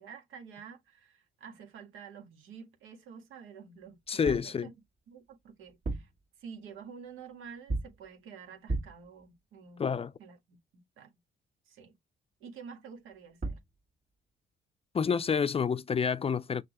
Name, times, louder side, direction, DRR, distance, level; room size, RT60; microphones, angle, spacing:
voice 1, 0.0-4.7 5.1-6.1 6.4-11.1 11.7-11.9 12.4-13.6, right 6 dB, 90° right, 1.6 m, -49 dB
voice 2, 4.1-4.7 9.8-10.1 14.9-16.6, left 6 dB, 30° left, 0.4 m, -28 dB
sound 1, 4.1-4.6 5.7-6.2 7.7-8.1 8.7-9.1 13.1-13.2 13.4-13.7, right 2 dB, 45° right, 1.7 m, -35 dB
6.0 x 2.7 x 3.0 m
cardioid pair, 90°, 20 cm